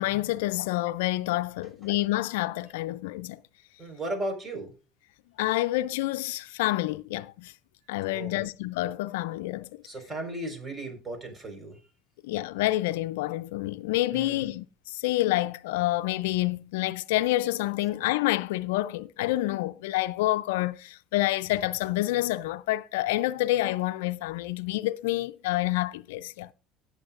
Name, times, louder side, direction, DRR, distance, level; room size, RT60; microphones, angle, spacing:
voice 1, 0.0-3.4 5.4-7.5 7.9-9.7 12.2-26.5, left 17 dB, 80° left, 0.4 m, -28 dB
voice 2, 3.8-4.7 8.1-8.4 9.8-11.8 14.1-14.5, right 1 dB, 30° right, 4.5 m, -36 dB
17.0 x 7.1 x 2.5 m
hypercardioid pair, 70°, 0 cm